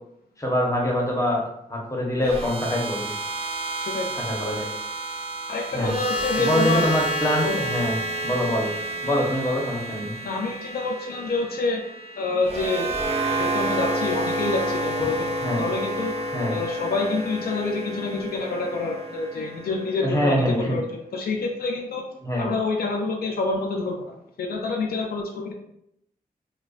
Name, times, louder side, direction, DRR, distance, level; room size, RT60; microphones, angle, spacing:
voice 1, 0.4-1.4 1.7-3.0 4.1-4.7 5.7-5.9 6.4-8.0 8.2-8.7 9.0-10.1 15.4-15.6 16.3-16.6 20.0-20.8 22.2-22.5, left 1 dB, 20° left, -2 dB, 0.8 m, -24 dB
sound 1, 2.2-20.4, right 1 dB, 40° right, 0.5 m, -30 dB
voice 2, 5.5-6.9 7.4-7.6 10.2-11.8 12.2-12.9 13.4-16.1 16.5-20.9 21.1-22.0 22.4-25.5, left 3 dB, 85° left, 1 dB, 0.4 m, -27 dB
2.4 x 2.2 x 2.3 m, 0.76 s
cardioid pair, 60°, 16 cm